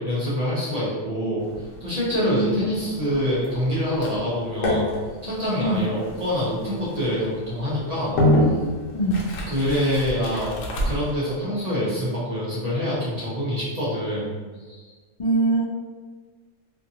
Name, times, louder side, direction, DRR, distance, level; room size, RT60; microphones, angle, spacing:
voice 1, 0.0-1.4 1.8-4.9 5.2-8.2 9.5-10.5 10.8-14.3 14.7-14.8, equal, 40° right, -8 dB, 0.6 m, -25 dB
sound 1, 1.4-11.2, left 1 dB, 90° left, 1.0 m, -28 dB
voice 2, 2.2-2.8 5.6-5.8 8.9-9.2 15.2-15.6, right 1 dB, 70° left, -7 dB, 0.3 m, -23 dB
2.6 x 2.5 x 2.7 m, 1.4 s
omnidirectional pair, 1.4 m